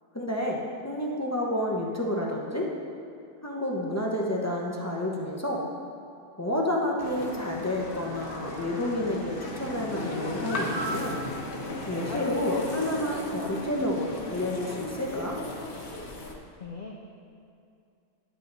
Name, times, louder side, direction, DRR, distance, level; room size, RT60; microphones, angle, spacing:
voice 1, 0.1-2.7 3.4-5.6 6.4-11.2 11.9-15.4, left 1 dB, 20° left, -2 dB, 0.5 m, -30 dB
sound 1, 7.0-16.3, left 1 dB, 40° left, 1.0 m, -34 dB
voice 2, 16.2-17.0, left 4 dB, 75° left, 0 dB, 0.4 m, -43 dB
10.5 x 8.3 x 4.0 m, 2.5 s
omnidirectional pair, 1.7 m